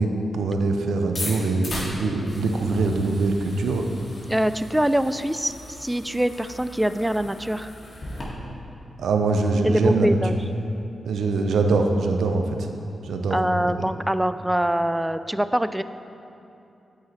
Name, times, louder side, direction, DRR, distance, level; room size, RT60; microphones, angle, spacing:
voice 1, 0.0-3.9 9.0-10.1 11.1-12.7 13.0-13.4, right 3 dB, 80° right, 4 dB, 0.5 m, -23 dB
sound 1, 1.0-8.2, left 1 dB, 55° left, 1.7 m, -38 dB
voice 2, 4.3-7.7 9.6-10.4 13.3-15.8, right 1 dB, 10° right, 12 dB, 0.3 m, -24 dB
7.9 x 4.9 x 4.2 m, 2.8 s
supercardioid pair, 45°, 0 cm